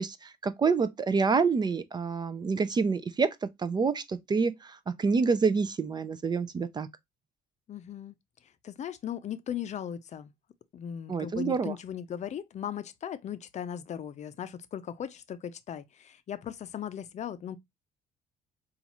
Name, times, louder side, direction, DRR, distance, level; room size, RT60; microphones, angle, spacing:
voice 1, 0.0-6.9 11.1-11.7, right 5 dB, 25° right, 0.4 m, -27 dB
voice 2, 7.7-8.2 8.6-10.3 10.7-17.6, left 9 dB, 45° left, 0.5 m, -38 dB
5.2 x 2.4 x 2.9 m
cardioid pair, 110°, 17 cm